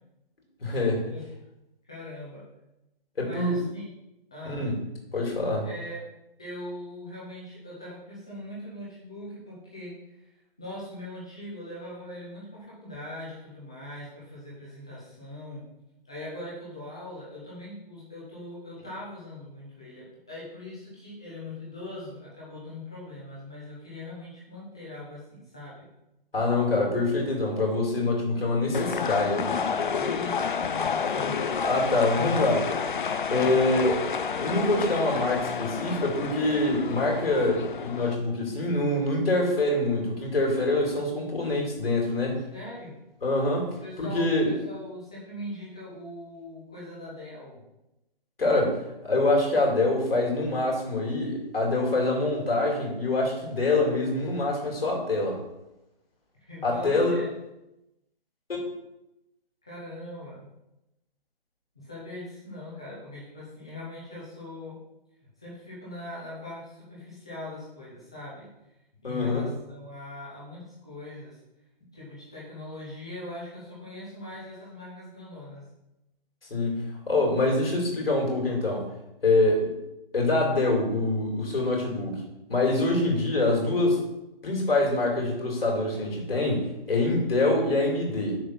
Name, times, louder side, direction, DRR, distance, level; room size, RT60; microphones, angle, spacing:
voice 1, 0.6-1.1 3.2-3.5 4.4-4.8 5.1-5.7 26.3-29.6 31.6-32.6 33.3-34.0 34.4-42.4 43.2-43.7 44.0-44.5 48.4-55.4 56.6-57.2 58.5-58.6 69.0-69.4 76.5-76.7 77.1-78.8 79.2-79.7 80.1-82.2 82.5-84.0 84.4-88.4, left 2 dB, 75° left, -2 dB, 2.8 m, -25 dB
voice 2, 1.8-2.4 3.2-3.9 4.3-4.7 5.6-6.1 6.4-10.3 10.6-15.6 16.0-25.9 30.0-31.7 32.0-32.6 33.3-33.8 42.3-43.0 43.8-47.6 56.4-57.3 59.7-60.5 61.7-64.8 65.4-68.5 69.0-71.4 71.9-75.7, left 1 dB, 5° left, -7 dB, 0.4 m, -41 dB
sound 1, 28.7-38.1, left 6 dB, 55° left, 0.5 m, -30 dB
6.5 x 3.7 x 5.8 m, 0.92 s
figure-of-eight pair, 155°, 29 cm